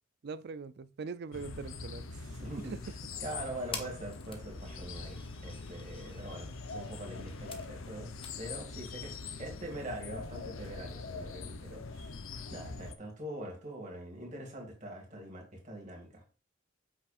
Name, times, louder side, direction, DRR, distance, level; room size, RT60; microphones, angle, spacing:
voice 1, 0.2-2.3 2.7-2.8, right 4 dB, 55° right, 0.4 m, -42 dB
sound 1, 1.3-12.9, left 3 dB, 85° left, 0.8 m, -43 dB
sound 2, 1.6-11.7, left 5 dB, 25° left, 0.9 m, -51 dB
voice 2, 2.1-2.7 3.2-12.2 12.5-16.2, right 1 dB, 35° right, 2.3 m, -43 dB
8.2 x 6.1 x 2.5 m
head